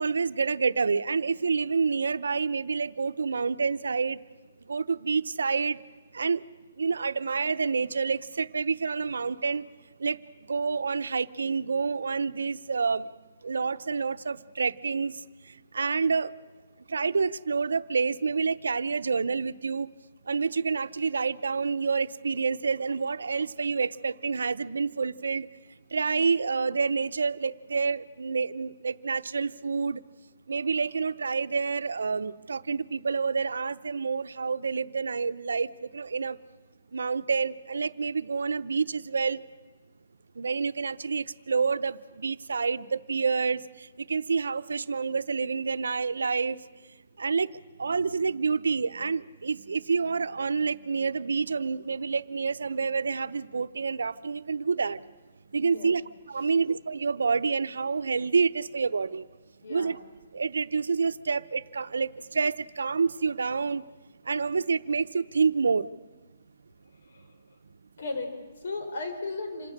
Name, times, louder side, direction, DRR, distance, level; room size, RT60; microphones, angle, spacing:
voice 1, 0.0-4.2 4.7-5.8 6.1-6.4 6.8-9.6 10.0-10.2 10.5-13.1 13.4-15.1 15.7-16.3 16.9-19.9 20.3-25.5 25.9-30.0 30.5-36.4 36.9-39.4 40.4-43.6 44.1-46.6 47.2-47.5 47.8-55.0 55.5-56.0 56.3-59.2 59.7-60.0 60.3-63.8 64.3-65.9, right 5 dB, 90° right, 13 dB, 0.7 m, -28 dB
voice 2, 55.5-56.0 56.3-56.6 59.6-60.0 67.0-67.4 68.0-69.7, left 3 dB, 65° left, 5 dB, 4.8 m, -37 dB
27.0 x 17.0 x 6.6 m, 1.2 s
hypercardioid pair, 160°, 0 cm